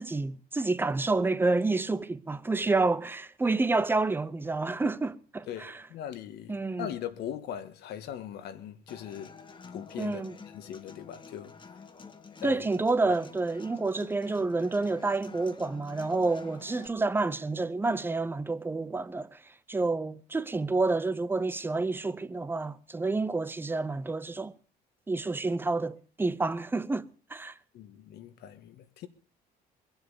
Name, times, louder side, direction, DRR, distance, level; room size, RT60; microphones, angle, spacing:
voice 1, 0.0-5.8 6.5-6.9 10.0-10.4 12.4-24.5 25.1-27.5, right 3 dB, 10° right, 0.7 m, -29 dB
voice 2, 5.5-9.3 9.7-10.3 10.5-11.5 12.4-12.7 27.7-29.1, left 10 dB, 75° left, 1.7 m, -40 dB
Human voice / Acoustic guitar, 8.9-16.9, left 5 dB, 30° left, 1.6 m, -49 dB
22.0 x 7.9 x 6.9 m
cardioid pair, 110°, 17 cm